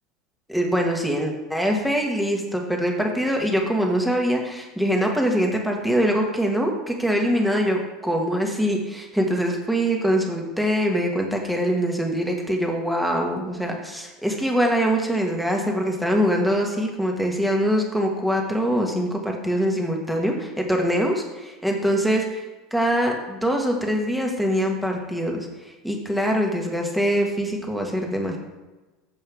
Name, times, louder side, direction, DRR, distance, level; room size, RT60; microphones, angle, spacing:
voice 1, 0.5-22.4 22.7-25.5 25.8-28.4, equal, ahead, 1 dB, 2.1 m, -23 dB
14.5 x 5.4 x 3.8 m, 1.2 s
supercardioid pair, 100°, 2 cm